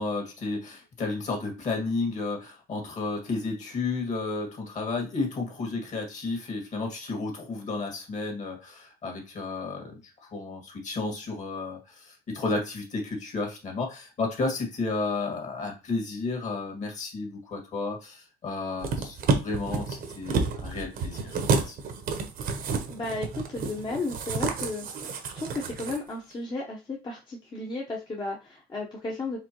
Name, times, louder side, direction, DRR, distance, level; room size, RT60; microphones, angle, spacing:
voice 1, 0.0-21.8, left 3 dB, 45° left, 1 dB, 2.1 m, -32 dB
sound 1, 18.8-26.0 26.3-26.4, right 4 dB, 60° right, 1.0 m, -30 dB
voice 2, 22.9-29.4, left 2 dB, 25° left, -2 dB, 1.0 m, -34 dB
5.1 x 3.4 x 3.1 m, 0.30 s
cardioid pair, 110°, 17 cm